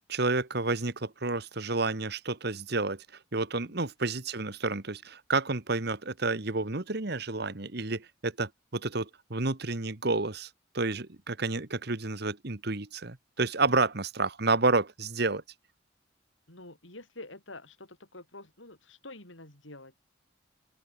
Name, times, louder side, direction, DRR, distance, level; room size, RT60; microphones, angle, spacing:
voice 1, 0.1-3.0 3.3-10.5 10.7-15.4, right 3 dB, 55° right, 1.5 m, -30 dB
voice 2, 16.5-19.9, left 2 dB, 80° left, 7.8 m, -48 dB
open air
head